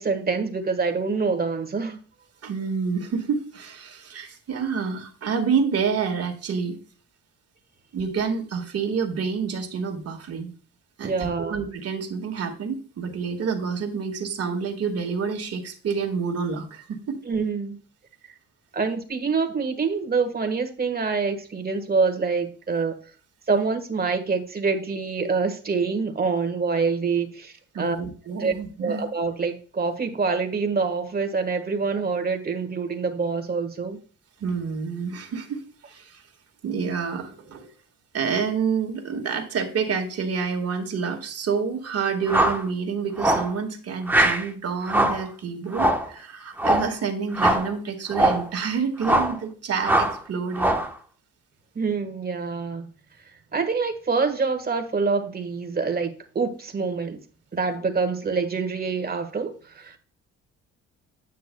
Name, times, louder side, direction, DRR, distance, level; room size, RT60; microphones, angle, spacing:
voice 1, 0.0-2.0 11.0-11.6 17.2-17.8 18.2-18.3 18.7-23.0 23.5-28.0 28.4-28.5 28.8-34.0 51.7-52.9 53.5-57.2 57.5-60.0, right 4 dB, 30° right, 1.5 m, -26 dB
voice 2, 2.4-6.8 7.9-10.5 11.0-17.2 27.7-29.0 34.4-36.2 36.6-37.7 38.1-50.7, right 5 dB, 55° right, 1.9 m, -28 dB
sound 1, 42.3-42.6 43.2-43.5 44.1-44.4 44.9-45.2 45.7-46.1 46.6-46.9 47.3-47.7 48.1-48.5 49.0-49.4 49.8-50.2 50.5-50.9, right 1 dB, 5° right, 1.1 m, -21 dB
9.2 x 8.3 x 2.3 m
cardioid pair, 90°, 30 cm